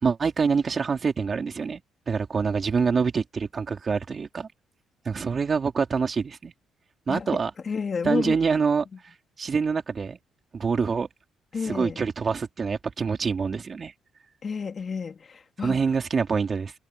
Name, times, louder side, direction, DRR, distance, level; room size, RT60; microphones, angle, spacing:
voice 1, 0.0-1.8 2.1-4.5 5.1-6.5 7.1-7.5 8.0-8.9 9.4-10.2 10.5-11.1 11.6-13.9 15.6-16.7, right 5 dB, 40° right, 3.7 m, -25 dB
voice 2, 7.6-8.4 11.5-12.0 14.4-15.8, left 5 dB, 40° left, 2.4 m, -30 dB
cardioid pair, 90°, 0 cm